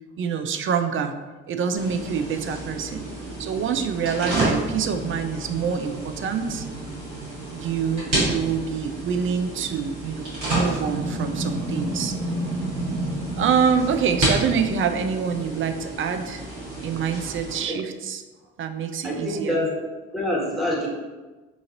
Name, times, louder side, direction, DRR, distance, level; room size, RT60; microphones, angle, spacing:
voice 1, 0.2-1.1 1.5-3.1 3.4-6.6 7.5-12.2 13.4-16.4 16.8-18.2 18.6-19.6, right 6 dB, 40° right, 7 dB, 0.4 m, -26 dB
sound 1, 1.8-17.6, right 1 dB, 90° right, 1.1 m, -30 dB
voice 2, 19.0-19.8 20.1-20.9, left 1 dB, ahead, -5 dB, 1.4 m, -26 dB
2.9 x 2.5 x 3.9 m, 1.2 s
hypercardioid pair, 40°, 34 cm